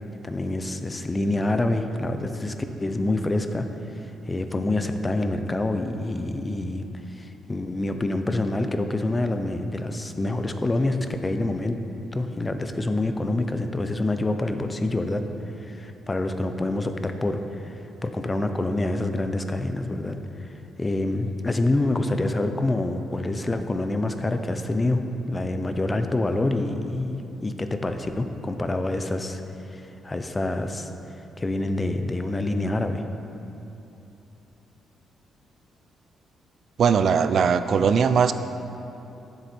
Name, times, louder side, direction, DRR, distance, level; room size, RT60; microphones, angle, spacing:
voice 1, 0.2-2.5 2.8-3.7 3.9-11.8 12.1-15.2 15.6-20.5 20.8-25.0 25.3-29.4 29.7-30.9 31.4-33.0, left 2 dB, 15° left, 7 dB, 0.5 m, -26 dB
voice 2, 36.8-38.3, right 6 dB, 50° right, 11 dB, 0.4 m, -20 dB
9.9 x 7.7 x 4.3 m, 2.9 s
cardioid pair, 150°, 0 cm